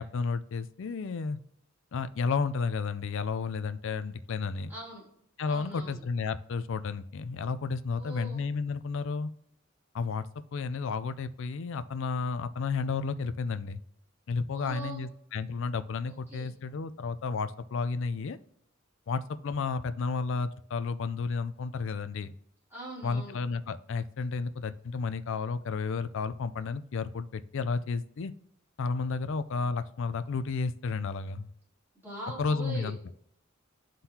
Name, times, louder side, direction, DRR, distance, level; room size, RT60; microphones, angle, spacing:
voice 1, 0.0-1.4 1.9-4.7 5.4-9.3 9.9-10.3 10.5-13.8 14.3-18.4 19.1-22.3 23.0-28.3 28.8-31.5 32.4-33.0, left 4 dB, 65° left, 13 dB, 0.4 m, -32 dB
voice 2, 4.7-5.0 5.5-6.0 8.0-8.4 14.5-15.0 16.1-16.5 22.7-23.4 32.0-32.9, right 2 dB, 10° right, -7 dB, 3.0 m, -42 dB
11.5 x 3.8 x 2.8 m, 0.68 s
head